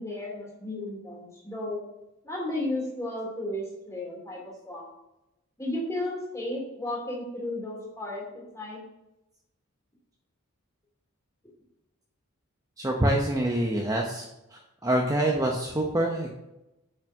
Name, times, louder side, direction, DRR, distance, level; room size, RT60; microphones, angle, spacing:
voice 1, 0.0-1.8 2.2-4.8 5.6-8.8, left 1 dB, 15° left, -3 dB, 2.6 m, -34 dB
voice 2, 12.8-14.3 14.8-16.3, right 1 dB, 15° right, 0 dB, 0.8 m, -25 dB
7.1 x 5.5 x 6.0 m, 0.94 s
head